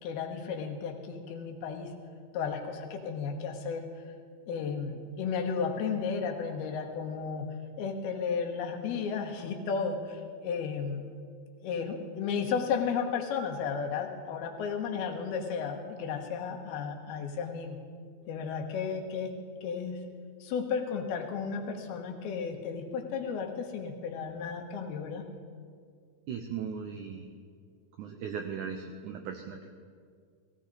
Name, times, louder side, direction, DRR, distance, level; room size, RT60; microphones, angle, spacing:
voice 1, 0.0-1.9 2.3-3.9 4.5-11.0 11.6-17.8 18.3-19.4 19.6-20.0 20.4-25.3, left 6 dB, 85° left, 2 dB, 3.1 m, -33 dB
voice 2, 26.3-27.4 28.0-29.7, right 7 dB, 85° right, 5 dB, 1.7 m, -38 dB
16.5 x 16.0 x 4.0 m, 2.1 s
omnidirectional pair, 4.4 m